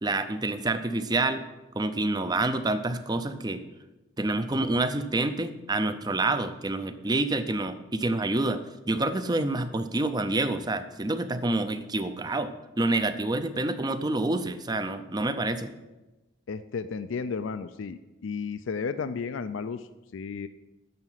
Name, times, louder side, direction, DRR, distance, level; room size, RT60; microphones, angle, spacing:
voice 1, 0.0-1.4 1.8-3.6 4.2-15.7, right 2 dB, 20° right, 11 dB, 0.5 m, -28 dB
voice 2, 16.5-20.5, left 5 dB, 65° left, 11 dB, 0.4 m, -33 dB
10.5 x 6.7 x 5.7 m, 1.1 s
head